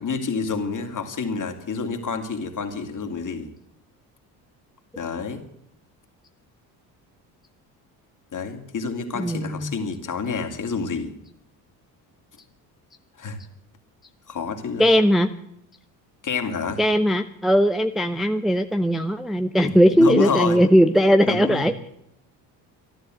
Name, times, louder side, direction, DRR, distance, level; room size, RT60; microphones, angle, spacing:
voice 1, 0.0-3.5 5.0-5.4 8.3-11.1 13.2-13.4 14.3-14.8 16.2-16.8 19.6-20.6 21.3-21.7, left 5 dB, 40° left, 5 dB, 2.6 m, -28 dB
voice 2, 9.1-9.7 14.8-15.3 16.8-21.7, equal, ahead, 7 dB, 0.7 m, -19 dB
13.5 x 11.5 x 7.7 m, 0.74 s
hypercardioid pair, 65°, 49 cm